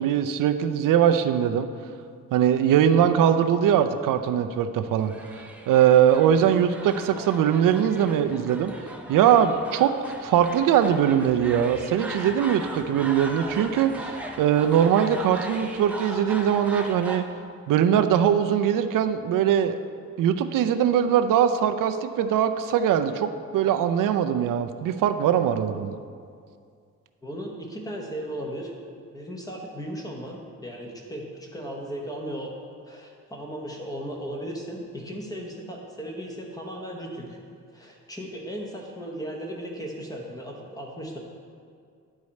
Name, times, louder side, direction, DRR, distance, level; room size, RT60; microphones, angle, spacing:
voice 1, 0.0-1.7 2.3-8.7 9.1-17.2 17.7-19.8 20.2-26.0, right 9 dB, 85° right, 9 dB, 0.5 m, -21 dB
sound 1, 5.0-17.2, right 1 dB, 5° right, 0.5 m, -39 dB
voice 2, 27.2-28.7 29.1-32.5 32.8-37.4 37.7-41.2, equal, 10° left, 0 dB, 0.9 m, -36 dB
10.5 x 4.9 x 4.1 m, 2.2 s
wide cardioid pair, 175°, 31 cm